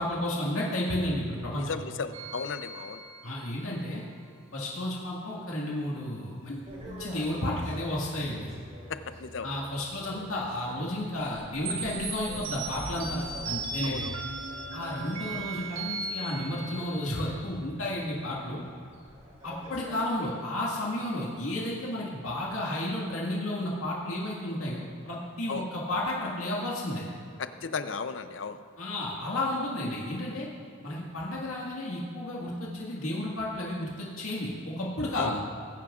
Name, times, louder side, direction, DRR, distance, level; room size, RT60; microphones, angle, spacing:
voice 1, 0.0-1.7 3.2-4.0 4.5-8.5 9.4-14.0 14.7-18.6 19.4-27.0 28.8-30.5 30.8-35.4, left 1 dB, 85° left, -4 dB, 1.8 m, -32 dB
voice 2, 1.5-3.0 8.9-9.5 13.8-14.2 25.5-25.7 27.4-28.6 35.2-35.3, left 5 dB, 60° left, 10 dB, 0.5 m, -35 dB
sound 1, 2.1-3.7 11.6-17.4, right 3 dB, 75° right, 1.5 m, -37 dB
sound 2, 6.6-20.0, equal, 35° right, 3.1 m, -49 dB
20.5 x 9.7 x 2.4 m, 2.4 s
head